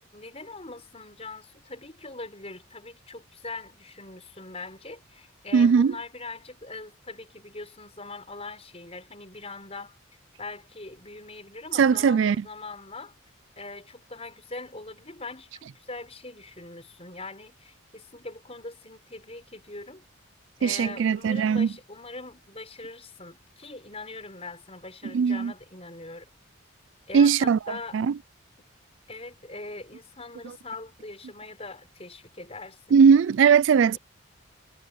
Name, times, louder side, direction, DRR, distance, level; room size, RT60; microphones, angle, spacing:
voice 1, 0.1-10.0 10.4-13.1 13.6-20.0 20.6-26.3 27.1-28.0 29.1-33.0 33.9-34.0, left 3 dB, 30° left, 5.9 m, -41 dB
voice 2, 5.5-5.9 11.8-12.4 20.6-21.7 25.1-25.5 27.1-27.6 27.9-28.1 32.9-34.0, right 6 dB, 60° right, 0.3 m, -19 dB
head